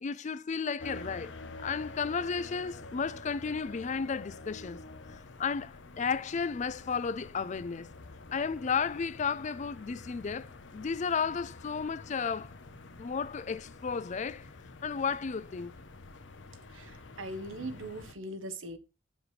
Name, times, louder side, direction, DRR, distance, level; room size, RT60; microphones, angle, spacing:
voice 1, 0.0-4.8 5.1-7.9 8.3-12.5 13.0-14.5 14.8-15.7, left 5 dB, 40° left, 0.4 m, -33 dB
sound 1, 0.8-18.1, left 2 dB, 65° left, 0.8 m, -48 dB
voice 2, 16.7-18.8, right 1 dB, 90° right, 1.1 m, -40 dB
8.0 x 7.1 x 3.2 m
head